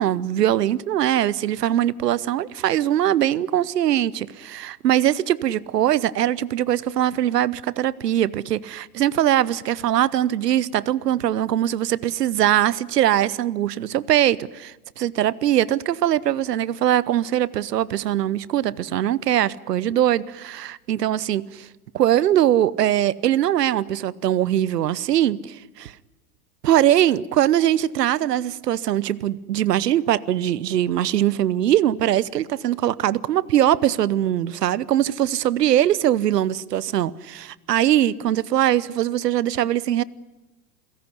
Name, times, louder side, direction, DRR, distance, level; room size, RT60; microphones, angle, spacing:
voice 1, 0.0-21.7 21.9-25.9 26.6-40.0, right 12 dB, 90° right, 1.0 m, -21 dB
28.5 x 17.5 x 9.8 m
hypercardioid pair, 105°, 47 cm